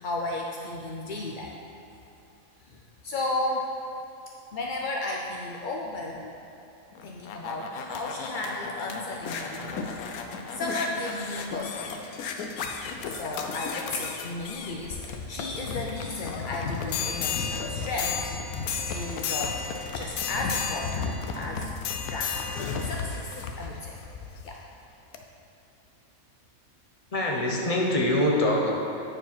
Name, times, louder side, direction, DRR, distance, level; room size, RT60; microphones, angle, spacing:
voice 1, 0.0-1.5 2.7-3.7 4.5-6.3 7.0-10.1 10.5-12.1 13.1-18.3 18.9-19.6 19.9-21.7 22.1-24.0 24.4-24.6, left 2 dB, 60° left, -1 dB, 0.5 m, -34 dB
sound 1, 6.9-24.6 25.1-25.2, left 5 dB, 80° left, 1.1 m, -33 dB
voice 2, 27.1-28.7, left 1 dB, 30° left, -2 dB, 0.9 m, -24 dB
9.0 x 4.8 x 5.8 m, 2.8 s
omnidirectional pair, 1.5 m